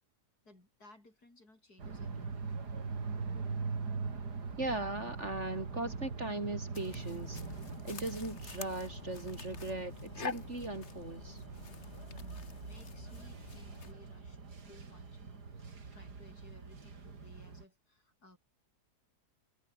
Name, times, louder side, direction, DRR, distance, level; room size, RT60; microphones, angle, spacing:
voice 1, 0.4-2.6 12.1-14.4 14.7-18.4, left 2 dB, 70° left, 8.1 m, -60 dB
sound 1, 1.8-17.6, right 4 dB, 80° right, 3.4 m, -43 dB
voice 2, 4.6-7.4 7.8-11.4, right 2 dB, 45° right, 4.6 m, -38 dB
sound 2, 6.7-13.9, left 5 dB, 45° left, 1.7 m, -47 dB
omnidirectional pair, 1.7 m